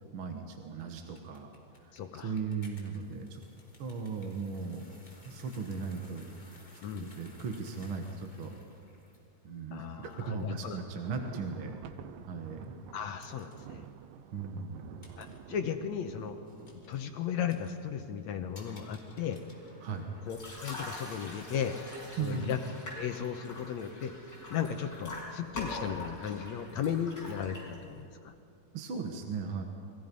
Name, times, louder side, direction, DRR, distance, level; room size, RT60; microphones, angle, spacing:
voice 1, 0.1-1.5 2.2-3.4 3.8-4.8 5.2-6.6 6.9-8.5 9.4-11.7 12.3-12.8 14.3-15.1 19.8-20.1 22.2-22.6 28.7-29.6, right 5 dB, 50° right, 4 dB, 1.7 m, -37 dB
sound 1, 0.8-20.7, left 1 dB, 15° left, 3.5 m, -60 dB
voice 2, 1.9-2.3 6.8-7.1 9.7-10.8 12.9-13.8 15.2-16.4 16.7-19.4 20.3-21.8 22.2-22.6 23.0-24.1 24.5-28.3, left 8 dB, 65° left, 6 dB, 1.9 m, -35 dB
Thunder, 10.5-17.7, right 10 dB, 90° right, 2.5 m, -50 dB
sound 2, 20.3-28.0, left 2 dB, 30° left, 6.3 m, -44 dB
30.0 x 22.5 x 5.4 m, 2.5 s
omnidirectional pair, 3.9 m